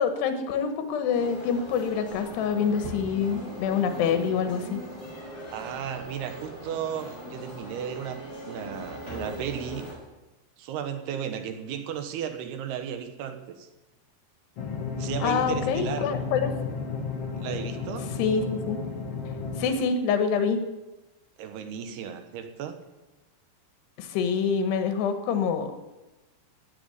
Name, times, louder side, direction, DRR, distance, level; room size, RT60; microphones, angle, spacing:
voice 1, 0.0-4.8 11.1-11.2 15.2-16.5 18.2-18.8 19.6-20.6 24.0-25.7, left 6 dB, 90° left, 8 dB, 3.4 m, -26 dB
sound 1, 1.1-9.9, equal, 15° left, 5.5 m, -40 dB
voice 2, 5.5-9.9 10.6-13.7 15.0-16.1 17.4-18.1 21.4-22.8, right 8 dB, 75° right, 7 dB, 3.1 m, -35 dB
sound 2, 14.6-19.7, left 4 dB, 50° left, 2.0 m, -33 dB
15.0 x 8.1 x 9.7 m, 1.1 s
omnidirectional pair, 4.7 m